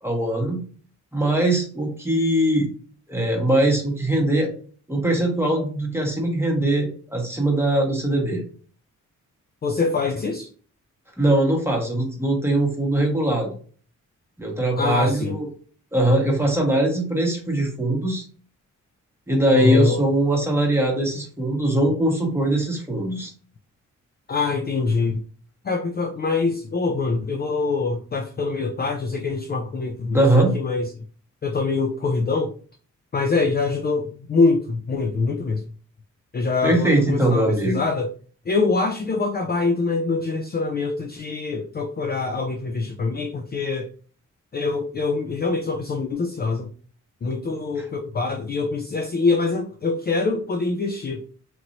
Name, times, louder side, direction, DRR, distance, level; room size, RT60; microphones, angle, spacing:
voice 1, 0.0-0.6 1.1-2.7 3.1-4.5 4.9-8.4 11.2-13.5 14.4-15.5 15.9-18.2 19.3-23.3 30.1-30.5 36.6-37.8 47.8-47.9, right 1 dB, 10° right, -1 dB, 1.2 m, -21 dB
voice 2, 9.6-10.5 14.8-15.4 19.5-20.0 24.3-25.2 25.6-30.9 31.4-32.5 33.1-35.6 36.3-38.1 38.5-43.9 44.5-46.7 47.2-51.2, left 3 dB, 30° left, 3 dB, 0.4 m, -24 dB
3.0 x 2.9 x 2.6 m, 0.42 s
cardioid pair, 80°, 31 cm